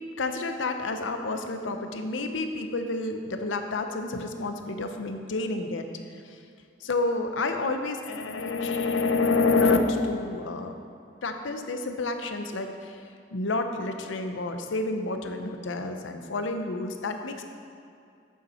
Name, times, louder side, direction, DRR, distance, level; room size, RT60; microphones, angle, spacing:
voice 1, 0.2-5.9 6.8-10.7 11.2-13.0 13.3-17.4, left 3 dB, 90° left, 6 dB, 0.7 m, -29 dB
8.4 x 7.0 x 4.2 m, 2.4 s
head